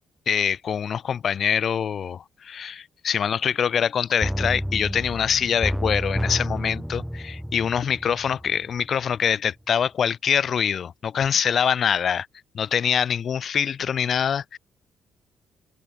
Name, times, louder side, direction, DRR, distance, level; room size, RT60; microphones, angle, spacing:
voice 1, 0.3-12.3 12.5-14.6, left 8 dB, 55° left, 3.2 m, -24 dB
sound 1, 4.2-8.9 9.2-9.3, equal, ahead, 4.4 m, -29 dB
cardioid pair, 90°, 0 cm